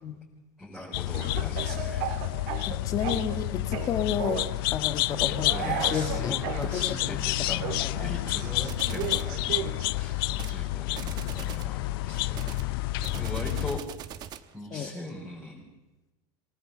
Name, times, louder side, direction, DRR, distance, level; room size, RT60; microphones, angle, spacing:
voice 1, 0.6-2.0 5.2-7.7 8.0-12.6 13.2-13.8 14.5-15.7, left 1 dB, 5° left, -6 dB, 4.2 m, -40 dB
sound 1, 0.9-13.8, left 17 dB, 70° left, 0.6 m, -30 dB
Speech / Cough, 1.1-3.4 3.7-4.5 5.4-6.7 7.6-9.9, right 10 dB, 55° right, 2.9 m, -35 dB
voice 2, 2.7-4.4 4.7-6.3 6.7-7.2 7.8-8.0 14.7-14.9, left 7 dB, 30° left, 8 dB, 1.9 m, -31 dB
sound 2, 8.7-9.3 10.3-10.6 10.9-11.7 12.3-14.5, right 10 dB, 35° right, 1.1 m, -42 dB
24.0 x 17.5 x 6.9 m, 1.1 s
supercardioid pair, 160°, 13 cm